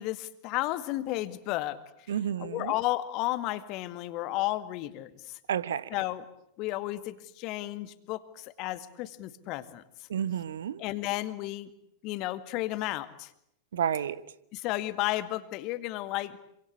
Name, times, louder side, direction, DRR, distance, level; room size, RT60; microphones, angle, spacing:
voice 1, 0.0-1.8 2.1-5.4 5.9-6.3 6.6-9.8 10.8-11.7 12.0-13.3 14.5-16.4, left 16 dB, 40° left, 2.0 m, -33 dB
voice 2, 2.1-2.7 5.5-5.9 10.1-10.8 13.7-14.2, right 9 dB, 65° right, 1.2 m, -30 dB
27.5 x 25.5 x 8.4 m
figure-of-eight pair, 90°, 0 cm